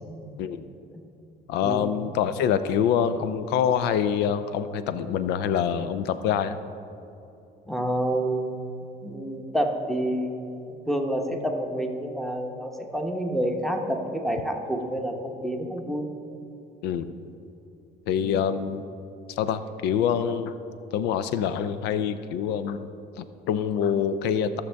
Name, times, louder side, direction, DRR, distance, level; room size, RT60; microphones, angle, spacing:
voice 1, 1.5-6.6 16.8-17.1 18.1-18.8 19.4-20.5 20.9-22.9 23.2-24.6, left 8 dB, 90° left, 12 dB, 0.4 m, -25 dB
voice 2, 7.7-8.6 9.0-16.1 18.1-18.4, right 1 dB, ahead, 3 dB, 1.0 m, -28 dB
15.5 x 6.4 x 3.4 m, 2.7 s
cardioid pair, 110°, 17 cm